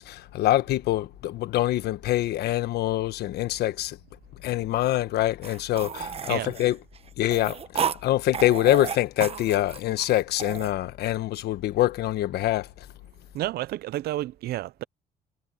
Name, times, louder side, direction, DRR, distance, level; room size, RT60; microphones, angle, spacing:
voice 1, 0.0-4.0 4.4-6.8 7.2-12.7, left 14 dB, 75° left, 1.3 m, -25 dB
sound 1, 5.4-8.0 8.3-10.7, right 7 dB, 35° right, 1.1 m, -32 dB
voice 2, 13.3-14.8, right 15 dB, 70° right, 0.6 m, -30 dB
cardioid pair, 110°, 17 cm